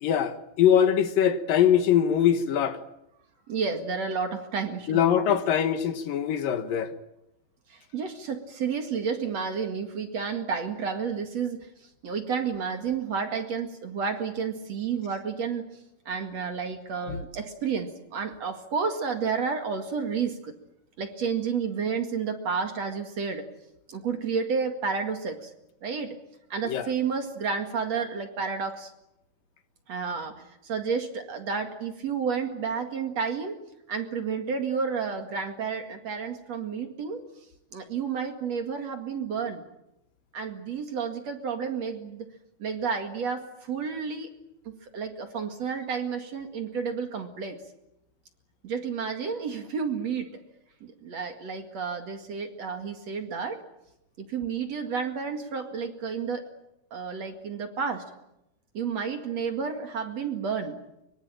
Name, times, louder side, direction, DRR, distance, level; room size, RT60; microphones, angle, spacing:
voice 1, 0.0-2.8 4.9-6.9 17.1-17.2 26.7-26.9, left 9 dB, 70° left, 2.8 m, -22 dB
voice 2, 3.5-5.4 7.7-11.6 12.0-15.7 16.1-20.5 21.0-23.5 23.9-25.5 25.8-26.2 26.5-28.9 29.9-30.3 30.6-33.6 33.9-37.2 37.7-39.6 40.3-42.3 42.6-44.3 44.7-47.6 48.6-50.4 50.8-53.6 54.2-56.4 56.9-58.1 58.7-60.8, right 6 dB, 50° right, 2.8 m, -31 dB
24.0 x 23.5 x 8.9 m
omnidirectional pair, 4.4 m